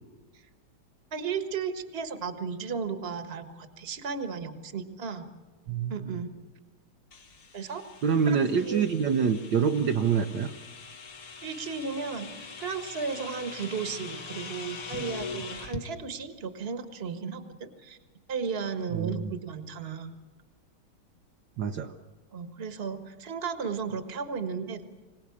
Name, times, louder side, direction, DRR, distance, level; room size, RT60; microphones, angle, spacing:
voice 1, 1.1-5.2 5.9-6.3 7.5-7.8 8.3-9.1 11.4-18.0 18.3-20.1 22.3-24.8, right 5 dB, 30° right, 8 dB, 1.5 m, -35 dB
sound 1, 7.1-15.9, left 4 dB, 45° left, 1.6 m, -42 dB
voice 2, 8.0-10.5 18.9-19.3 21.6-21.9, right 6 dB, 65° right, 4 dB, 1.5 m, -26 dB
25.5 x 18.0 x 8.5 m, 1.3 s
omnidirectional pair, 2.3 m